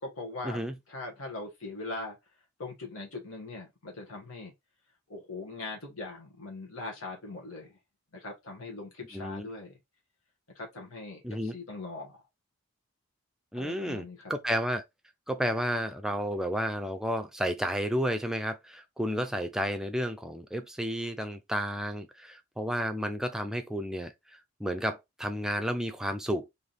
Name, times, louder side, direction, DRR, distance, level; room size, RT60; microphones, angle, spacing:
voice 1, 0.0-2.2 2.6-4.5 5.1-7.8 8.1-9.8 10.5-12.2 13.5-14.3, left 2 dB, 80° left, 1.2 m, -41 dB
voice 2, 9.1-9.5 11.2-11.5 13.5-14.8 15.3-24.1 24.6-26.5, equal, 5° right, 0.4 m, -31 dB
3.3 x 2.7 x 3.9 m
head